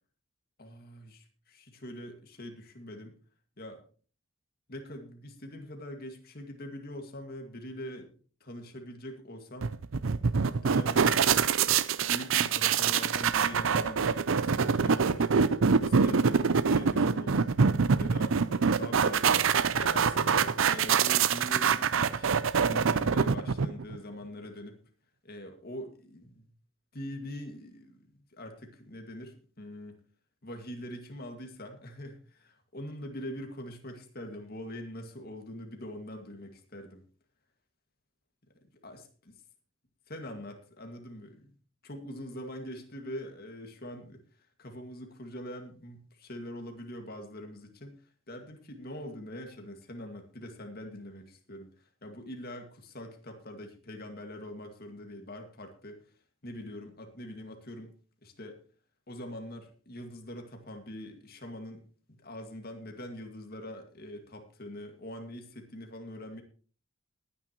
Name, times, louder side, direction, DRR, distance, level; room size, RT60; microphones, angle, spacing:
voice 1, 0.6-3.1 3.6-3.8 4.7-8.1 8.4-9.7 10.4-11.2 12.1-15.6 15.8-17.5 18.0-19.4 19.7-22.3 22.7-24.8 25.2-26.5 26.9-28.0 28.3-30.0 30.4-37.0 38.8-39.0 40.1-41.5 41.8-44.2 44.6-48.0 48.3-56.0 56.4-57.9 58.2-58.6 59.1-61.8 62.1-66.4, left 1 dB, 45° left, 4 dB, 2.1 m, -43 dB
sound 1, 9.6-24.0, right 6 dB, 65° right, 0.6 m, -25 dB
20.5 x 9.7 x 3.1 m, 0.41 s
head